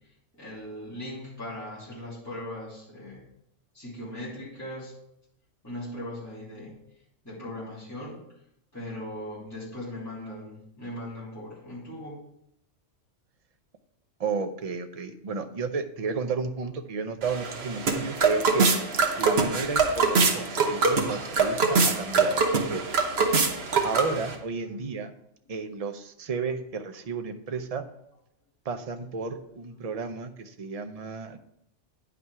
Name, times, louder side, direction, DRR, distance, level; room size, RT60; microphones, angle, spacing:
voice 1, 0.0-3.2 3.7-4.9 5.6-6.8 7.2-8.2 8.7-12.2 24.6-24.7, left 1 dB, 15° left, -8 dB, 3.1 m, -39 dB
voice 2, 14.2-18.7 19.2-22.8 23.8-25.1 25.5-27.8 28.6-31.4, right 4 dB, 40° right, 8 dB, 0.6 m, -32 dB
sound 1, 17.2-24.3, right 4 dB, 55° right, 1.3 m, -24 dB
9.6 x 6.0 x 4.7 m, 0.77 s
omnidirectional pair, 1.3 m